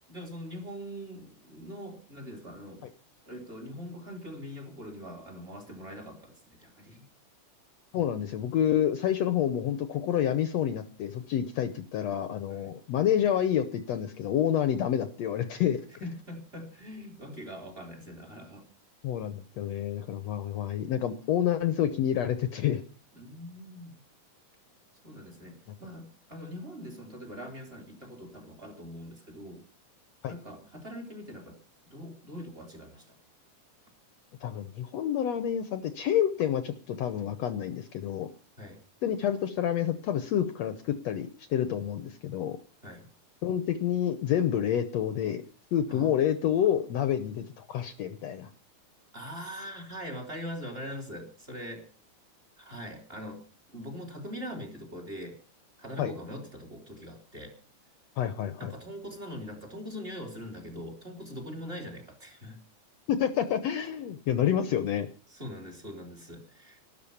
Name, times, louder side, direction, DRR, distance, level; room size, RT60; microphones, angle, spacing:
voice 1, 0.1-2.8 3.3-7.1 12.5-12.7 16.0-18.7 23.1-24.0 25.0-29.6 30.3-31.6 31.9-33.2 38.6-38.8 42.8-43.1 45.9-46.1 49.1-51.9 52.6-53.4 53.7-55.4 55.8-57.6 58.6-62.6 65.3-66.8, equal, 20° right, 2 dB, 3.4 m, -42 dB
voice 2, 7.9-15.8 19.0-22.8 30.2-30.3 34.4-38.3 39.0-42.6 43.4-45.4 45.7-48.5 56.0-56.1 58.2-58.7 63.1-65.1, left 10 dB, 65° left, 10 dB, 1.9 m, -28 dB
13.5 x 12.5 x 7.1 m, 0.39 s
omnidirectional pair, 3.5 m